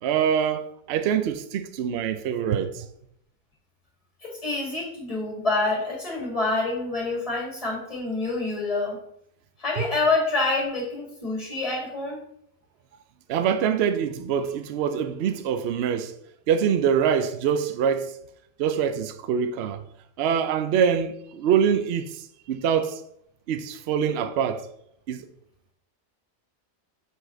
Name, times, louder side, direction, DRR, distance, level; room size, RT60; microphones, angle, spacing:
voice 1, 0.0-2.9 9.8-9.9 13.3-16.1 16.5-18.1 18.6-19.8 20.2-23.0 23.5-24.7 25.1-25.3, right 8 dB, 65° right, 0.7 m, -24 dB
voice 2, 4.2-9.0 9.6-12.2, left 3 dB, 25° left, 2.3 m, -27 dB
7.0 x 4.0 x 3.8 m
omnidirectional pair, 1.4 m